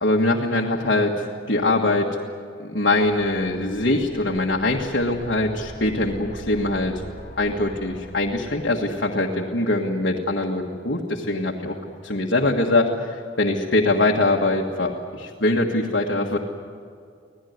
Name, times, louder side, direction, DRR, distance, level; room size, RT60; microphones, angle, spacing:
voice 1, 0.0-2.1 2.6-7.0 7.4-11.8 12.0-16.4, left 2 dB, 65° left, -1 dB, 1.7 m, -22 dB
sound 1, 2.8-9.3, equal, 45° left, 4.0 m, -42 dB
26.0 x 17.5 x 9.5 m, 2.3 s
head